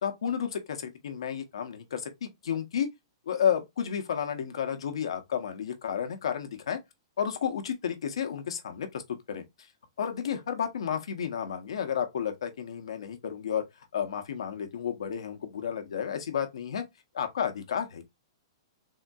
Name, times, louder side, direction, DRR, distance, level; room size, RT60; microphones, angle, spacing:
voice 1, 0.0-2.9 3.3-6.8 7.2-9.0 9.3-9.4 10.0-16.8 17.1-18.1, left 8 dB, 80° left, 0.7 m, -32 dB
3.6 x 2.6 x 2.2 m
hypercardioid pair, 175°, 3 cm